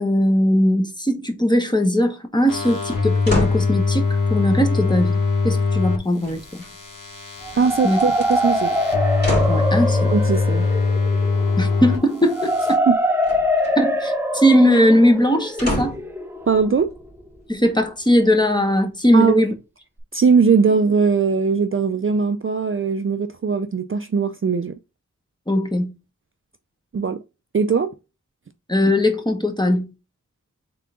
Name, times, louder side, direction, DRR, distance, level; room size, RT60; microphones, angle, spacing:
voice 1, 0.0-6.6 7.8-8.0 9.5-10.1 11.6-12.8 13.8-16.0 17.5-19.5 25.5-25.9 28.7-29.9, left 1 dB, 15° left, 0.9 m, -19 dB
sound 1, 2.5-6.0 6.3-12.0 12.3-12.7, left 4 dB, 75° left, 1.6 m, -22 dB
sound 2, 3.3-3.7 6.2-6.9 7.9-8.3 9.2-9.7 13.2-13.8 15.6-16.1 16.8-16.9, left 1 dB, 30° left, 2.4 m, -27 dB
sound 3, 7.4-17.3, equal, 5° right, 0.7 m, -24 dB
voice 2, 7.6-8.7 10.1-10.7 12.9-13.0 16.5-16.9 19.1-19.4 20.1-24.8 26.9-27.2 27.5-27.9, right 5 dB, 40° right, 0.4 m, -19 dB
3.8 x 3.7 x 3.5 m
wide cardioid pair, 65°, 32 cm